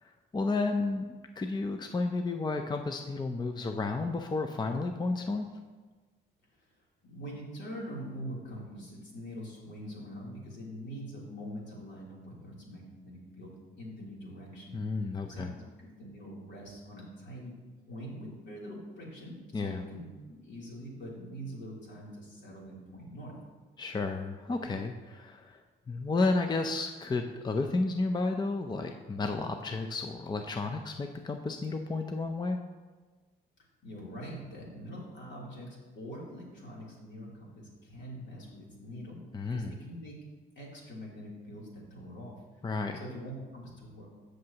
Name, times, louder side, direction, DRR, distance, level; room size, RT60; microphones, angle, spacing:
voice 1, 0.0-5.5 14.7-15.5 19.5-19.9 23.8-25.6 25.9-32.6 39.3-39.7 42.6-43.0, left 3 dB, 20° left, 5 dB, 0.5 m, -32 dB
voice 2, 7.0-13.5 13.8-14.8 15.2-15.5 15.8-17.5 17.9-23.3 33.8-40.1 40.5-42.4 42.9-44.2, equal, 65° left, -4 dB, 3.2 m, -44 dB
14.0 x 6.6 x 2.9 m, 1.3 s
cardioid pair, 90°, 20 cm